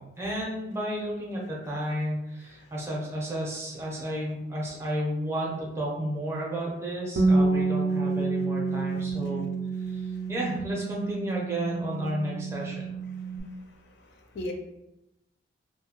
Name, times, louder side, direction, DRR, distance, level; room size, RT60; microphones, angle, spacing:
voice 1, 0.0-9.5 9.9-10.0 10.3-12.9, right 1 dB, 15° right, -4 dB, 0.6 m, -32 dB
Bass guitar, 7.2-13.4, right 3 dB, 55° right, 0.4 m, -28 dB
voice 2, 14.0-14.5, left 1 dB, 60° left, 3 dB, 0.4 m, -37 dB
2.6 x 2.2 x 2.8 m, 0.90 s
head